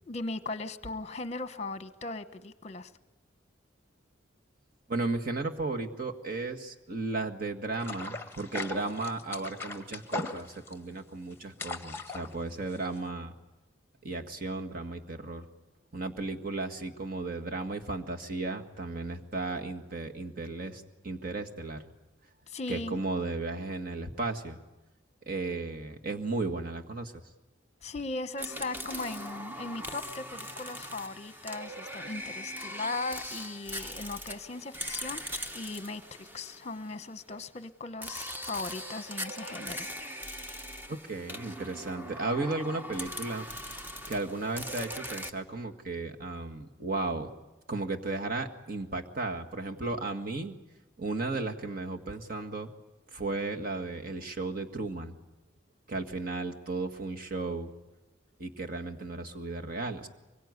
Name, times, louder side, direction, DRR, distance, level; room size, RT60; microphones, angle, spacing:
voice 1, 0.1-2.9 22.5-23.0 27.8-39.9, left 3 dB, 35° left, 12 dB, 1.1 m, -38 dB
voice 2, 4.9-13.3 14.0-15.5 15.9-21.8 22.7-24.6 25.3-27.2 40.9-43.5 44.1-47.3 47.7-50.6 51.0-52.7 53.1-55.2 55.9-57.7 58.4-60.1, right 3 dB, 45° right, 3 dB, 1.9 m, -34 dB
sound 1, 7.8-13.1, left 3 dB, 10° left, 1.5 m, -39 dB
sound 2, 28.4-37.2 38.0-45.3, equal, 10° right, 1.1 m, -40 dB
24.5 x 22.5 x 9.7 m, 1.1 s
head